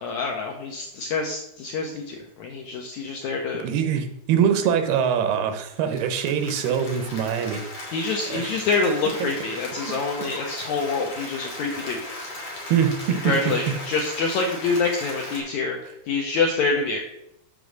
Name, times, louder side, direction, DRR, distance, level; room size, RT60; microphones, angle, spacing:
voice 1, 0.0-3.6 7.9-12.0 13.2-15.8 16.1-17.0, left 4 dB, 75° left, 1 dB, 1.7 m, -26 dB
voice 2, 3.6-7.6 8.3-8.5 9.2-9.3 9.9-10.3 12.7-13.5, right 8 dB, 90° right, 8 dB, 2.9 m, -24 dB
Applause, 5.7-15.4, left 1 dB, 45° left, 3.2 m, -37 dB
7.6 x 5.2 x 6.3 m, 0.80 s
omnidirectional pair, 4.4 m